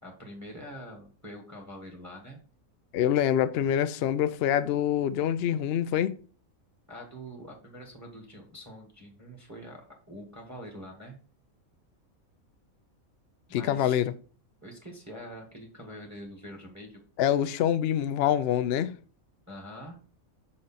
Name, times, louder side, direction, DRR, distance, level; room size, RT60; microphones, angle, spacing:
voice 1, 0.0-2.4 6.9-11.2 13.5-14.0 14.6-17.0 19.5-20.0, equal, 10° right, 1.3 m, -45 dB
voice 2, 2.9-6.1 13.5-14.1 17.2-18.9, left 10 dB, 65° left, 0.6 m, -25 dB
6.3 x 4.3 x 4.1 m
omnidirectional pair, 1.5 m